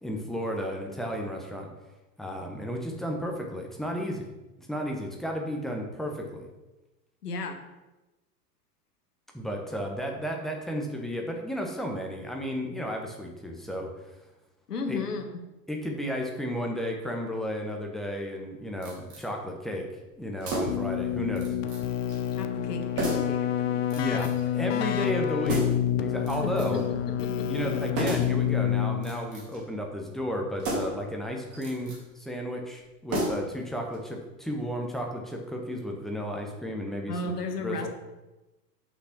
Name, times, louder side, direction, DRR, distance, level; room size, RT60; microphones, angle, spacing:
voice 1, 0.0-1.7 2.2-4.3 4.6-6.5 9.3-13.9 14.9-15.0 15.7-19.9 20.2-21.5 23.9-25.7 26.0-26.8 27.5-37.3 37.6-37.9, equal, ahead, 1 dB, 1.1 m, -33 dB
voice 2, 7.2-7.6 14.7-15.4 22.4-23.9 26.4-27.7 37.1-37.9, left 3 dB, 70° left, 5 dB, 1.5 m, -34 dB
sound 1, 18.8-19.3 20.4-20.9 21.4-21.8 22.1-22.2 23.0-23.4 23.9-24.5 25.5-25.9 26.3-26.9 28.0-28.4 29.0-29.6 30.6-31.1 31.5-32.0 33.1-33.6 33.9-34.0, right 1 dB, 30° right, 2.5 m, -32 dB
Keyboard (musical), 20.7-29.4, left 10 dB, 50° left, 0.8 m, -28 dB
6.2 x 6.0 x 5.9 m, 1.1 s
figure-of-eight pair, 95°, 49 cm